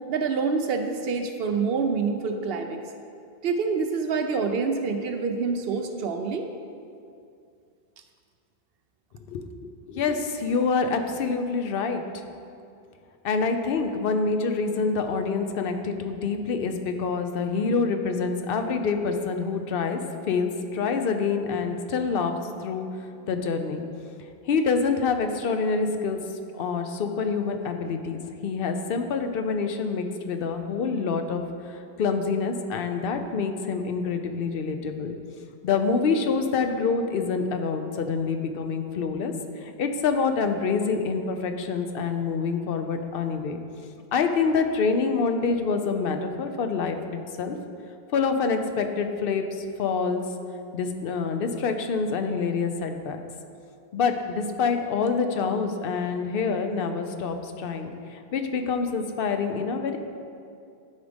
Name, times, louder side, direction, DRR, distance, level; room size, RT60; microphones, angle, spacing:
voice 1, 0.1-2.8 3.4-6.5, right 5 dB, 70° right, 6 dB, 0.8 m, -26 dB
voice 2, 9.9-12.0 13.2-20.0 20.3-22.3 22.6-22.9 23.2-23.8 24.5-26.2 26.5-31.4 31.7-35.1 35.6-39.3 39.6-43.6 44.1-47.0 47.4-47.5 48.1-50.2 50.7-53.2 53.9-60.0, left 5 dB, 65° left, 6 dB, 0.8 m, -26 dB
12.0 x 5.0 x 3.4 m, 2.5 s
omnidirectional pair, 1.1 m